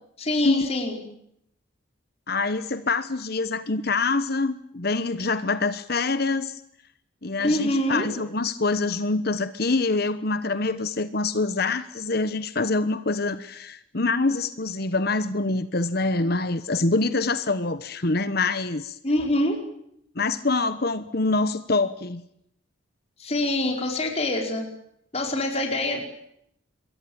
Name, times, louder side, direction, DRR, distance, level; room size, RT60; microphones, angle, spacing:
voice 1, 0.2-1.0 7.4-8.1 19.0-19.6 23.2-24.7 25.1-26.0, left 1 dB, 30° left, 2 dB, 5.0 m, -25 dB
voice 2, 2.3-6.6 7.2-19.0 20.1-22.2, left 3 dB, 50° left, 12 dB, 1.1 m, -25 dB
26.5 x 22.5 x 8.8 m, 0.75 s
head